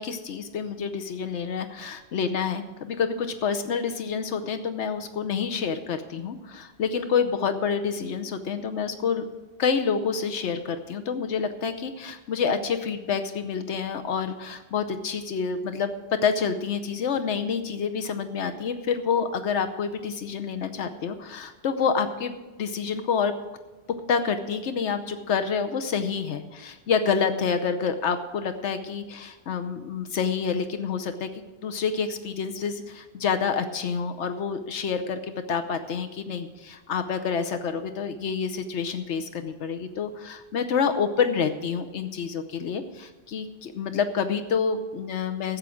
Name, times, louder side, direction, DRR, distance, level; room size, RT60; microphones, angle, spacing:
voice 1, 0.0-9.2 9.6-23.3 24.1-31.3 31.6-45.6, left 6 dB, 80° left, 9 dB, 1.1 m, -28 dB
12.5 x 8.3 x 6.2 m, 1.2 s
omnidirectional pair, 1.2 m